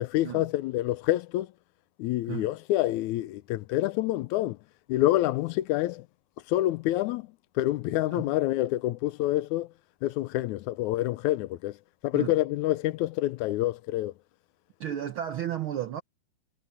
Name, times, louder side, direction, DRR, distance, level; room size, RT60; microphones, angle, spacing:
voice 1, 0.0-1.5 2.0-4.6 4.9-6.0 6.5-7.3 7.6-9.7 10.0-11.7 12.0-14.1, left 15 dB, 85° left, 2.0 m, -27 dB
voice 2, 14.8-16.0, right 10 dB, 75° right, 1.2 m, -33 dB
omnidirectional pair, 3.4 m